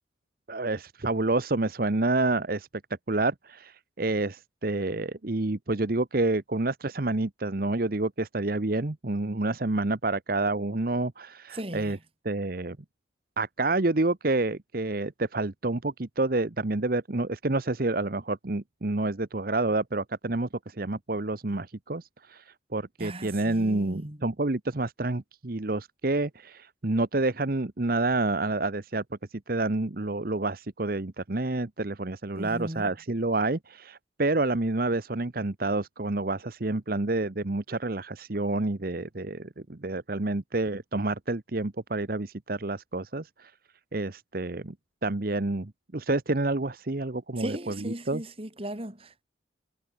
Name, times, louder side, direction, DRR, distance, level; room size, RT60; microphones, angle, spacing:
voice 1, 0.5-2.7 3.1-12.0 12.2-12.8 13.4-29.0 29.3-43.5 43.9-44.7 45.0-48.2, right 2 dB, 50° right, 1.0 m, -28 dB
voice 2, 11.5-12.0 23.0-24.2 32.4-32.9 47.4-49.2, right 1 dB, 30° right, 2.8 m, -37 dB
head